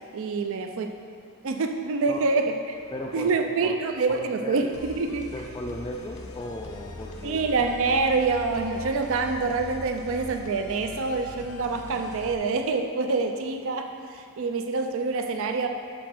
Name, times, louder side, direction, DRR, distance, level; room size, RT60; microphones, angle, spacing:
voice 1, 0.1-0.9 1.4-2.5 3.1-5.3 7.2-15.7, right 4 dB, 60° right, 5 dB, 0.4 m, -26 dB
voice 2, 2.9-3.8 4.1-4.7 5.3-7.5, left 1 dB, 20° left, 0 dB, 0.3 m, -36 dB
sound 1, 4.7-12.3, left 2 dB, 85° left, 0.8 m, -42 dB
6.2 x 6.0 x 5.9 m, 2.4 s
head